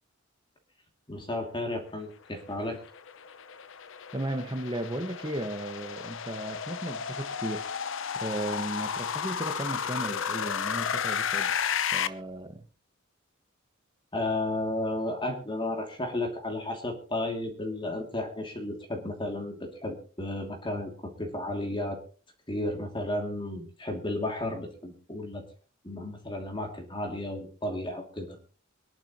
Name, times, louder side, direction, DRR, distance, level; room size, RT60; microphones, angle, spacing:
voice 1, 1.1-2.8 14.1-22.0 22.5-25.4 25.8-28.4, left 1 dB, 25° left, 2.7 m, -33 dB
sound 1, 2.5-12.1, left 7 dB, 65° left, 0.8 m, -33 dB
voice 2, 4.1-7.7 8.1-11.5 11.9-12.6, right 1 dB, 20° right, 1.5 m, -35 dB
25.0 x 11.0 x 3.0 m
head